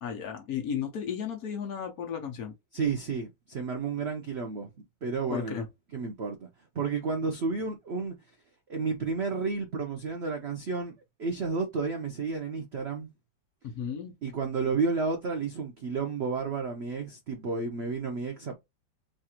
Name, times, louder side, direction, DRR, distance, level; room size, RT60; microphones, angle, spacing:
voice 1, 0.0-2.5 5.3-5.7 13.6-14.1, left 8 dB, 60° left, 1.1 m, -34 dB
voice 2, 2.7-4.7 5.0-5.6 5.9-6.5 6.7-8.1 8.7-13.1 14.2-18.6, right 4 dB, 75° right, 0.5 m, -31 dB
3.3 x 2.5 x 4.2 m
omnidirectional pair, 2.0 m